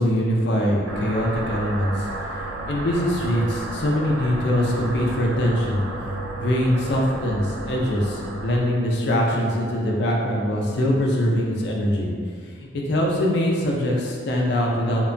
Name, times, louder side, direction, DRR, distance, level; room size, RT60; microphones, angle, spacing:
voice 1, 0.0-2.4 2.7-5.8 6.4-12.1 12.4-15.0, equal, 55° left, -2 dB, 0.4 m, -23 dB
sound 1, 0.9-8.6, right 2 dB, 70° right, 0.3 m, -32 dB
2.8 x 2.1 x 2.5 m, 2.2 s
head